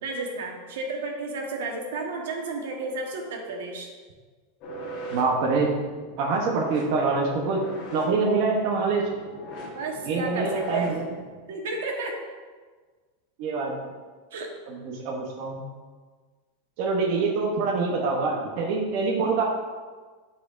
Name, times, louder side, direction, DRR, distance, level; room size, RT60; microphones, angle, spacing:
voice 1, 0.0-3.9 9.7-10.9 11.5-12.2 14.3-14.5, right 3 dB, 85° right, 1 dB, 1.3 m, -32 dB
sound 1, 4.6-11.3, equal, 35° left, 1.3 m, -40 dB
voice 2, 5.1-5.7 6.2-7.6 7.9-9.1 10.1-11.0 13.4-13.7 14.7-15.7 16.8-19.4, right 4 dB, 45° right, -1 dB, 0.8 m, -25 dB
11.5 x 4.3 x 2.5 m, 1.4 s
supercardioid pair, 175°, 0 cm